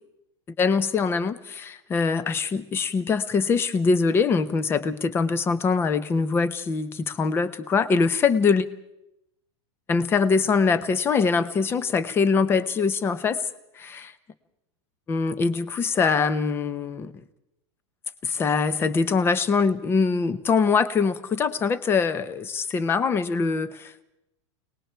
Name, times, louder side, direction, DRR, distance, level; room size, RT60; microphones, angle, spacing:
voice 1, 0.6-8.6 9.9-13.4 13.8-14.1 15.1-17.1 18.2-24.1, left 5 dB, 15° left, 16 dB, 0.8 m, -23 dB
30.0 x 19.5 x 4.5 m, 0.84 s
supercardioid pair, 165°, 15 cm